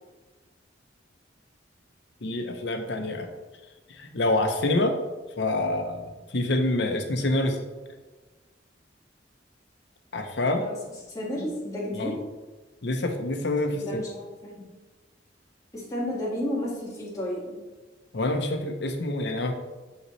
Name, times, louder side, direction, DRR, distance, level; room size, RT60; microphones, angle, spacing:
voice 1, 2.2-3.3 3.9-5.0 5.4-7.6 10.1-10.6 11.9-12.2 12.8-14.0 18.1-19.5, left 2 dB, 65° left, 5 dB, 0.8 m, -27 dB
voice 2, 11.1-12.1 13.8-14.6 15.7-17.6, left 1 dB, 20° left, -6 dB, 1.7 m, -32 dB
6.8 x 5.6 x 3.1 m, 1.3 s
head